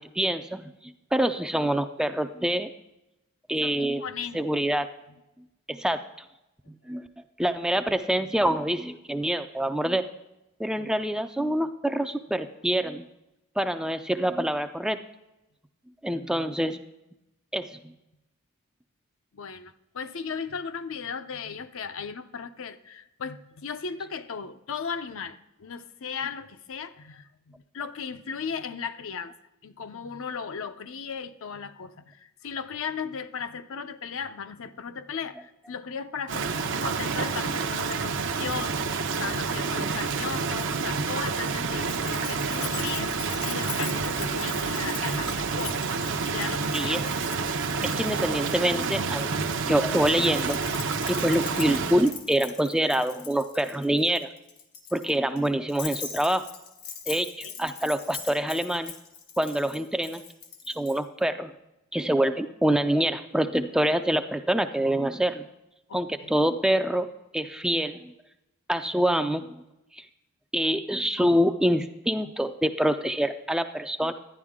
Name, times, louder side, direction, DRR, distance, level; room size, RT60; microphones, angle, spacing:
voice 1, 0.0-2.7 3.5-4.0 4.3-4.9 5.7-6.0 6.9-7.1 7.4-10.0 10.6-13.1 13.6-15.0 16.0-16.8 17.5-17.6 46.7-47.0 47.8-49.3 49.6-50.6 51.1-54.3 54.9-56.4 57.1-58.9 59.4-60.2 60.7-61.5 61.9-65.5 65.9-67.1 67.3-68.1 68.7-69.6 69.9-70.1 70.5-74.1, right 1 dB, 5° right, 8 dB, 0.3 m, -26 dB
voice 2, 4.0-4.4 19.3-29.3 29.6-43.2 43.4-47.0 57.1-57.2 57.4-57.5 65.9-66.3, left 6 dB, 60° left, 9 dB, 0.6 m, -36 dB
Rain, 36.3-52.1, right 4 dB, 60° right, 0.7 m, -29 dB
Keys jangling, 41.8-49.3 50.0-61.0, left 7 dB, 90° left, 1.3 m, -41 dB
11.5 x 10.0 x 3.6 m, 0.90 s
head